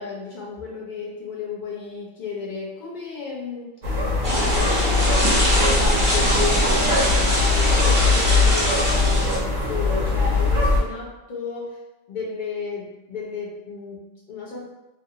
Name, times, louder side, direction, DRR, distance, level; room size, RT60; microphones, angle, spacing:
voice 1, 0.0-3.7 4.3-4.9 5.5-11.8 12.1-14.7, left 5 dB, 45° left, -4 dB, 0.7 m, -33 dB
sound 1, 3.8-10.8, left 3 dB, 50° right, 0.6 m, -21 dB
sound 2, 4.2-9.4, equal, 25° right, 0.9 m, -22 dB
2.6 x 2.5 x 2.7 m, 0.98 s
omnidirectional pair, 1.4 m